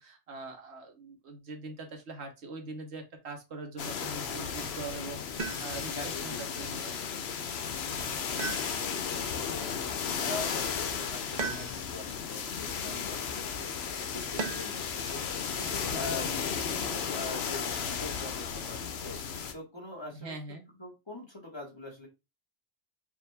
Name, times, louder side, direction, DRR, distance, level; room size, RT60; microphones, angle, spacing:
voice 1, 0.0-6.9 7.9-8.2 15.9-16.3 20.1-20.6, right 3 dB, 85° right, 4 dB, 1.3 m, -43 dB
sound 1, 3.8-19.5, left 7 dB, 75° left, 0.9 m, -34 dB
sound 2, 5.4-6.0 8.4-9.2 11.4-12.1 14.4-14.9 16.6-17.2, right 5 dB, 50° right, 0.8 m, -38 dB
voice 2, 5.9-6.8 8.3-13.7 14.1-20.3 20.8-22.1, left 2 dB, 25° left, -1 dB, 1.4 m, -43 dB
5.1 x 2.5 x 3.3 m, 0.24 s
omnidirectional pair, 1.1 m